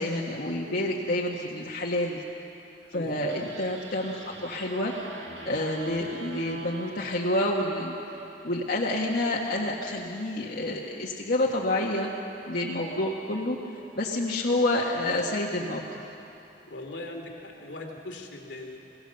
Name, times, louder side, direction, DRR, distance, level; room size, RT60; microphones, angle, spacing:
voice 1, 0.0-2.2 2.9-4.9 5.4-7.9 8.4-12.1 12.5-13.6 13.9-16.0, left 1 dB, 60° left, -3 dB, 1.5 m, -28 dB
voice 2, 2.9-3.5 16.7-18.8, left 2 dB, 90° left, 1 dB, 2.5 m, -40 dB
sound 1, 3.3-8.6, right 2 dB, 85° right, 2.0 m, -44 dB
23.5 x 16.5 x 6.9 m, 2.9 s
head